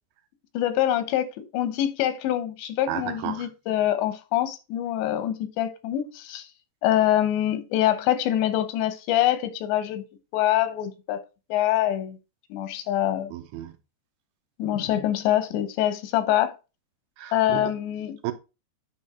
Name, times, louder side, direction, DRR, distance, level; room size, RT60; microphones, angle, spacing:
voice 1, 0.5-6.5 6.8-10.0 10.3-11.2 11.5-12.2 12.5-13.3 14.6-16.5 17.3-18.2, left 12 dB, 85° left, 3.1 m, -25 dB
voice 2, 2.9-3.5 13.3-13.7 17.2-17.7 18.2-18.3, right 13 dB, 85° right, 2.6 m, -32 dB
9.4 x 3.8 x 4.2 m
omnidirectional pair, 4.9 m